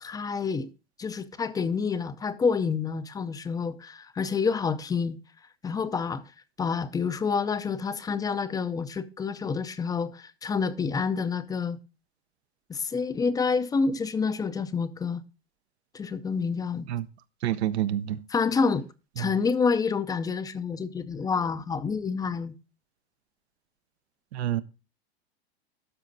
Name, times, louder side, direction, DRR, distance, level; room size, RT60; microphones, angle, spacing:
voice 1, 0.0-0.7 1.0-5.2 5.6-6.2 6.6-11.8 12.7-15.2 15.9-16.9 18.3-18.8 19.2-22.5, left 5 dB, 10° left, 0.4 m, -28 dB
voice 2, 17.4-18.2 19.2-19.3 24.3-24.6, right 11 dB, 75° right, 0.8 m, -28 dB
12.5 x 4.9 x 3.9 m
hypercardioid pair, 120°, 32 cm